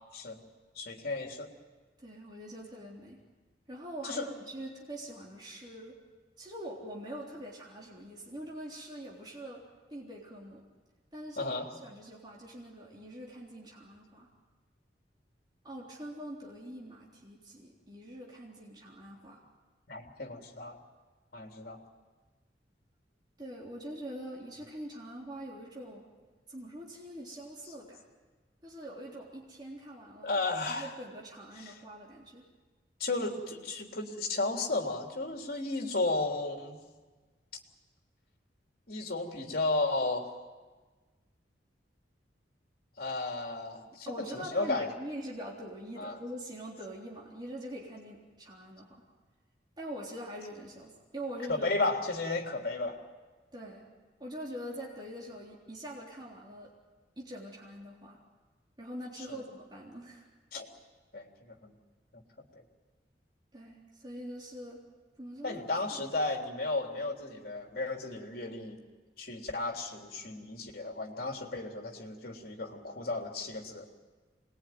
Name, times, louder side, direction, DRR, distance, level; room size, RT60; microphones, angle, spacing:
voice 1, 0.7-1.5 4.0-4.3 11.4-11.7 19.9-20.8 21.3-21.8 30.2-30.9 31.6-31.7 33.0-36.8 38.9-40.3 43.0-44.9 46.0-46.2 51.5-53.0 59.3-59.4 60.5-60.7 61.1-61.7 62.1-62.2 62.5-62.6 65.4-68.8 69.2-73.9, left 2 dB, 55° left, 2 dB, 3.4 m, -34 dB
voice 2, 2.0-3.2 3.7-6.0 6.4-10.7 11.1-11.6 11.8-14.3 15.6-19.4 23.4-26.1 26.5-28.0 28.6-30.4 30.7-32.5 43.9-49.0 49.8-51.9 53.5-53.9 54.2-56.7 57.2-58.2 58.8-60.3 63.5-64.8 65.2-65.6 65.9-66.1, right 1 dB, 25° right, -4 dB, 3.7 m, -44 dB
26.5 x 21.0 x 9.5 m, 1.3 s
head